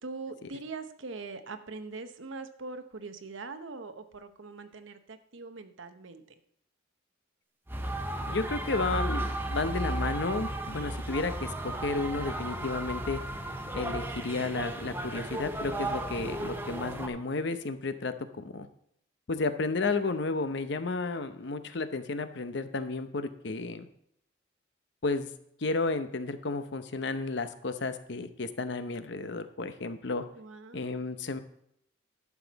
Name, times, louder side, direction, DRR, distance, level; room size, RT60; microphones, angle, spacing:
voice 1, 0.0-6.2 30.3-31.1, right 3 dB, 80° right, 9 dB, 0.9 m, -42 dB
sound 1, 7.7-17.1, right 1 dB, 10° right, 0.8 m, -34 dB
voice 2, 8.3-13.2 13.7-18.7 19.3-23.9 25.0-25.3 25.6-30.2 30.7-31.4, left 3 dB, 65° left, 10 dB, 0.8 m, -32 dB
11.5 x 7.1 x 4.1 m, 0.73 s
head